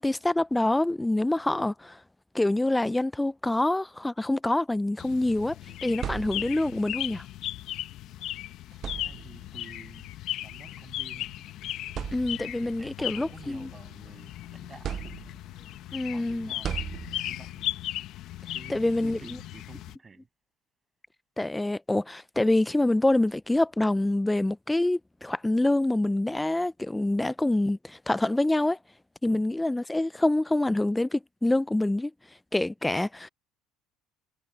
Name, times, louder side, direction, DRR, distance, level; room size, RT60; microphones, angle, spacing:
voice 1, 0.0-2.0 2.3-5.6 5.8-7.2 12.1-13.7 15.9-16.5 18.7-19.2 21.4-28.8 29.2-32.1 32.5-33.3, left 2 dB, 10° left, 0.5 m, -26 dB
sound 1, 5.0-20.0, left 14 dB, 60° left, 1.1 m, -37 dB
sound 2, 5.7-6.8 8.1-8.2 8.7-9.6 10.7-10.9 11.4-11.5 11.9-12.7 13.2-14.3 14.8-15.6 16.6-17.5, right 9 dB, 45° right, 0.5 m, -37 dB
voice 2, 8.9-10.2 10.4-11.4 12.6-15.1 16.1-17.7 18.5-20.3 29.2-29.4, right 4 dB, 25° right, 7.8 m, -50 dB
supercardioid pair, 100°, 0 cm